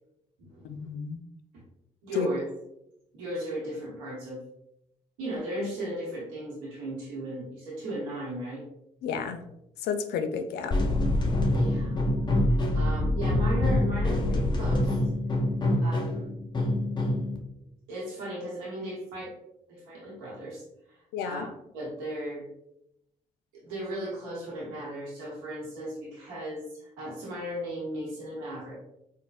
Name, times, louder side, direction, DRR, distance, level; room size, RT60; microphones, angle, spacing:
voice 1, 0.6-1.2 2.1-2.3 9.0-9.5 9.8-10.7 21.1-21.5, left 6 dB, 75° left, 8 dB, 0.4 m, -31 dB
voice 2, 2.0-2.5 3.1-4.4 5.2-8.6 11.5-12.0 12.7-15.0 15.8-16.3 17.9-19.3 19.7-22.5 23.5-28.7, right 1 dB, 90° right, -6 dB, 0.8 m, -36 dB
sound 1, 10.7-17.4, left 1 dB, 25° left, 0.6 m, -25 dB
4.0 x 2.1 x 2.3 m, 0.83 s
hypercardioid pair, 50°, 17 cm